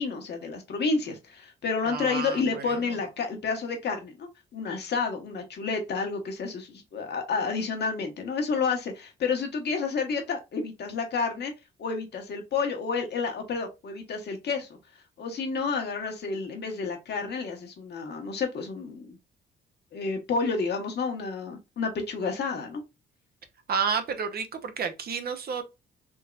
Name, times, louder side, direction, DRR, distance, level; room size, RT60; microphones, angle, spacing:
voice 1, 0.0-11.5 11.8-14.7 15.2-19.2 19.9-22.8, left 4 dB, 60° left, 1.2 m, -30 dB
voice 2, 1.8-2.7 23.7-25.6, right 6 dB, 50° right, 0.8 m, -30 dB
3.7 x 2.8 x 2.3 m
cardioid pair, 90°, 20 cm